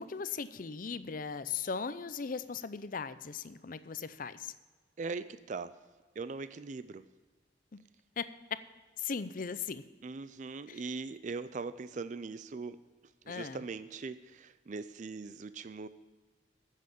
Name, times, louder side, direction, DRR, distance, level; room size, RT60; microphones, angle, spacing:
voice 1, 0.0-4.5 7.7-7.8 8.2-8.3 9.0-9.8 10.7-10.8 13.3-13.6, left 5 dB, 45° left, 14 dB, 0.5 m, -38 dB
voice 2, 5.0-5.7 6.2-7.0 10.0-12.8 13.3-15.9, right 4 dB, 40° right, 13 dB, 0.4 m, -40 dB
9.4 x 7.6 x 8.2 m, 1.4 s
head